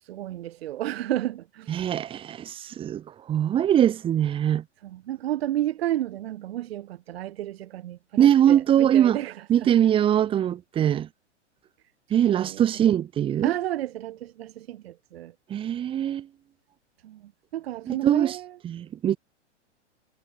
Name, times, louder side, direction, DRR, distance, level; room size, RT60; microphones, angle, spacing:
voice 1, 0.0-1.9 4.8-9.9 12.3-12.6 13.4-15.3 17.0-18.6, right 13 dB, 55° right, 3.0 m, -32 dB
voice 2, 1.7-4.6 8.2-9.2 9.5-11.1 12.1-13.5 15.5-16.3 17.9-18.4 18.6-19.2, right 10 dB, 15° right, 0.8 m, -22 dB
hypercardioid pair, 120°, 36 cm